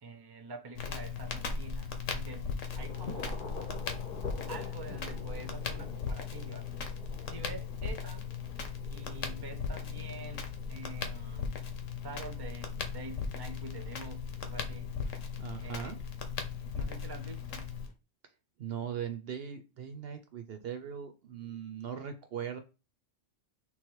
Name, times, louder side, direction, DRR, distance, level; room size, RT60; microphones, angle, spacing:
voice 1, 0.0-2.5 2.8-3.5 4.5-6.7 7.3-8.3 8.9-11.6 12.0-14.9 15.6-16.0 16.7-17.7, right 4 dB, 25° right, 0.5 m, -46 dB
Crackle, 0.8-17.9, left 5 dB, 85° left, 1.2 m, -38 dB
sound 1, 2.7-17.9, left 4 dB, 50° left, 0.9 m, -49 dB
voice 2, 15.4-16.0 18.6-22.6, right 8 dB, 60° right, 0.7 m, -39 dB
3.7 x 3.1 x 4.5 m
omnidirectional pair, 1.3 m